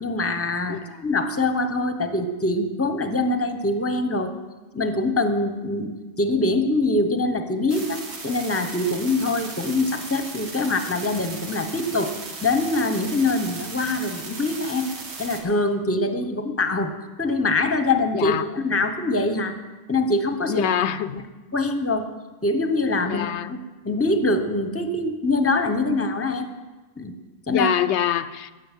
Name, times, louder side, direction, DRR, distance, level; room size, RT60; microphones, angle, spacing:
voice 1, 0.0-4.3 4.7-5.9 6.2-12.1 12.4-14.9 15.2-16.9 17.2-19.5 19.9-20.7 21.5-22.1 22.4-23.6 23.8-26.5 27.0-27.1 27.5-27.7, left 2 dB, 15° left, 8 dB, 0.8 m, -24 dB
sound 1, 7.7-15.4, right 3 dB, 90° right, 1.9 m, -36 dB
voice 2, 18.1-18.4 20.5-21.2 23.1-23.5 27.5-28.5, left 10 dB, 90° left, 14 dB, 0.9 m, -24 dB
13.0 x 6.7 x 9.0 m, 1.2 s
omnidirectional pair, 1.1 m